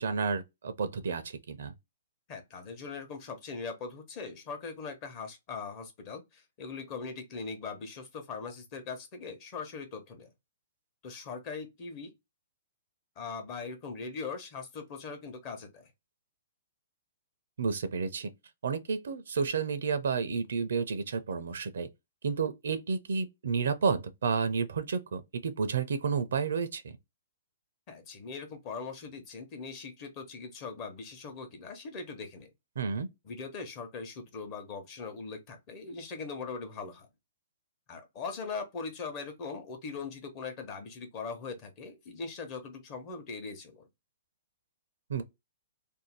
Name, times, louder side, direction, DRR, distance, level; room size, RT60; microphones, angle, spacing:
voice 1, 0.0-1.7 17.6-18.3 18.6-21.9 22.2-26.8 32.8-33.1 45.1-45.2, right 5 dB, 80° right, 0.5 m, -31 dB
voice 2, 2.3-10.3 11.0-12.1 13.2-15.9 27.9-32.5 33.2-37.1 37.9-43.8, left 4 dB, 35° left, 0.9 m, -40 dB
2.6 x 2.1 x 3.2 m
hypercardioid pair, 145°, 0 cm